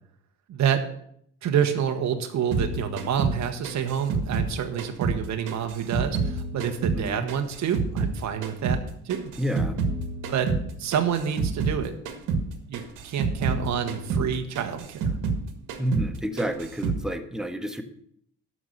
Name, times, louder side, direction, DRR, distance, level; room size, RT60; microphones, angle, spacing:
voice 1, 0.5-0.8 1.4-9.3 10.3-10.5 10.8-11.9 12.7-15.1, right 8 dB, 65° right, 6 dB, 1.3 m, -28 dB
sound 1, 2.5-5.2 5.5-8.2 8.4-11.8 12.0-12.5 12.7-15.4 15.7-16.1 16.4-17.0, right 4 dB, 85° right, 1.8 m, -28 dB
voice 2, 6.9-7.3 9.4-9.8 15.8-17.8, equal, ahead, 6 dB, 1.4 m, -29 dB
12.5 x 5.5 x 7.8 m, 0.69 s
cardioid pair, 90°, 30 cm